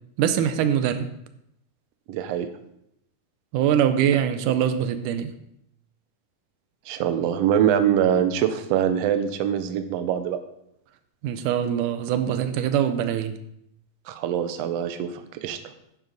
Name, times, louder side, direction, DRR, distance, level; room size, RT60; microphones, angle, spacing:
voice 1, 0.2-1.1 3.5-5.3 11.2-13.4, right 9 dB, 90° right, 2.2 m, -23 dB
voice 2, 2.1-2.5 6.9-10.4 14.1-15.6, right 9 dB, 70° right, 1.6 m, -24 dB
10.5 x 9.1 x 4.0 m
omnidirectional pair, 3.6 m